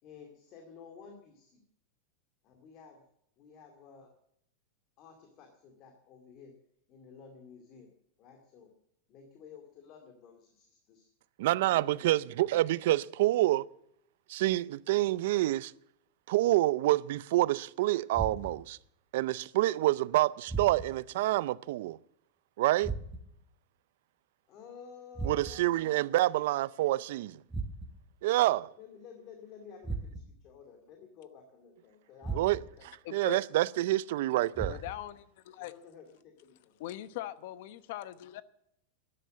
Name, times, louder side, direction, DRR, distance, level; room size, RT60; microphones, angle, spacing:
voice 1, 0.0-1.6 2.4-3.0 3.4-4.1 5.0-6.5 6.9-7.9 8.2-8.7 9.1-11.1 11.6-12.0 24.5-25.9 28.8-33.4 35.6-36.7, left 6 dB, 35° left, 2.3 m, -53 dB
voice 2, 11.4-13.7 14.3-15.7 16.3-18.8 19.1-22.0 22.6-22.9 25.2-27.4 28.2-28.7 32.3-32.6 33.1-34.8, right 16 dB, 60° right, 0.5 m, -27 dB
sound 1, 18.1-18.8 20.5-21.1 22.8-23.5 25.1-25.8 27.5-28.1 29.8-30.5 32.2-32.9 34.5-35.2, right 3 dB, 10° right, 1.2 m, -38 dB
voice 3, 33.0-33.4 34.7-35.7 36.8-38.4, left 14 dB, 55° left, 1.0 m, -41 dB
13.0 x 11.0 x 7.5 m
supercardioid pair, 170°, 0 cm